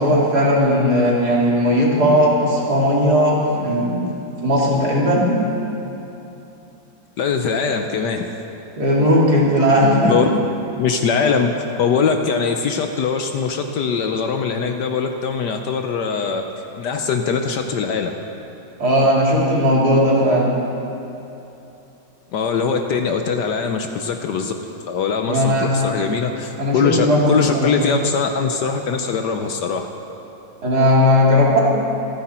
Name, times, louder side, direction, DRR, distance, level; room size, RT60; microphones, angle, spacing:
voice 1, 0.0-4.0 4.4-5.3 8.8-10.1 18.8-20.5 25.3-25.7 26.6-27.7 30.6-31.6, equal, 50° right, -4 dB, 3.0 m, -17 dB
voice 2, 7.2-8.3 10.0-10.3 10.8-16.4 16.8-18.2 22.3-24.5 24.9-29.9, left 5 dB, 65° left, 5 dB, 1.2 m, -21 dB
26.5 x 10.0 x 4.3 m, 2.9 s
omnidirectional pair, 2.2 m